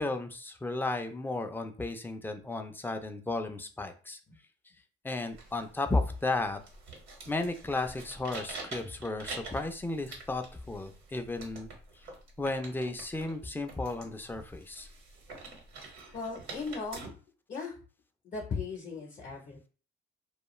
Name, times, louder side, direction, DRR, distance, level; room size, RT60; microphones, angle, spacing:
voice 1, 0.0-4.2 5.0-6.6 7.3-11.7 12.4-14.9, left 2 dB, 10° left, 7 dB, 0.4 m, -34 dB
sound 1, 5.3-17.1, right 3 dB, 80° right, 1.0 m, -47 dB
voice 2, 16.1-17.1 17.5-17.7 18.2-19.7, left 4 dB, 45° left, 0 dB, 0.7 m, -37 dB
2.3 x 2.3 x 3.0 m, 0.38 s
cardioid pair, 90°, 20 cm